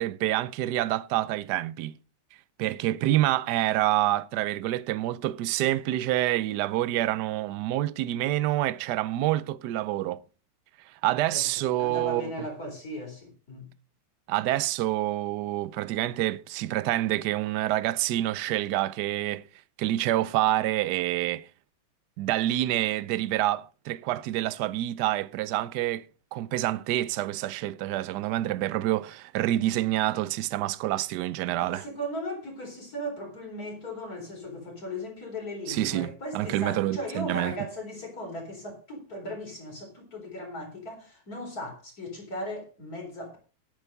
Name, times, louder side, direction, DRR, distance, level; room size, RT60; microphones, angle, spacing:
voice 1, 0.0-2.0 2.6-10.2 11.0-12.3 14.3-19.4 19.8-21.5 22.2-26.1 26.3-31.8 35.7-37.5, right 14 dB, 70° right, 1.1 m, -27 dB
voice 2, 11.3-13.7 31.5-43.4, equal, 45° left, 4.6 m, -37 dB
10.5 x 9.1 x 5.2 m
omnidirectional pair, 2.3 m